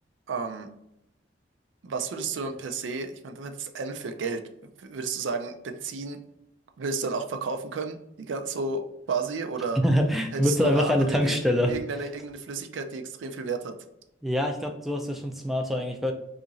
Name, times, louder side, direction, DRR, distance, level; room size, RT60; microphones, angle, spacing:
voice 1, 0.3-0.7 1.8-6.2 6.8-9.8 10.3-11.4 11.7-13.8, right 4 dB, 80° right, 6 dB, 0.4 m, -32 dB
voice 2, 9.8-11.8 14.2-16.1, equal, ahead, 3 dB, 0.3 m, -24 dB
2.9 x 2.5 x 3.9 m, 0.85 s
head